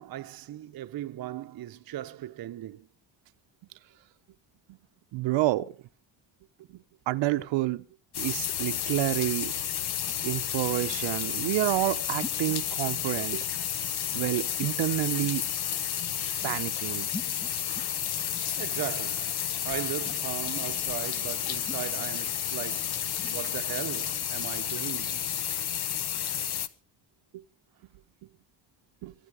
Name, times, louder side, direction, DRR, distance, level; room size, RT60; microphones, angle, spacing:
voice 1, 0.0-2.9 18.6-25.2, right 14 dB, 55° right, 0.8 m, -38 dB
voice 2, 5.1-5.7 7.1-7.8 8.2-9.5 10.2-13.4 14.1-15.5 16.4-17.1 29.0-29.1, right 17 dB, 90° right, 0.8 m, -29 dB
sound 1, 8.1-26.7, left 10 dB, 60° left, 1.2 m, -31 dB
sound 2, 8.8-23.4, left 3 dB, 15° left, 1.0 m, -48 dB
24.5 x 9.3 x 4.9 m
cardioid pair, 125°, 43 cm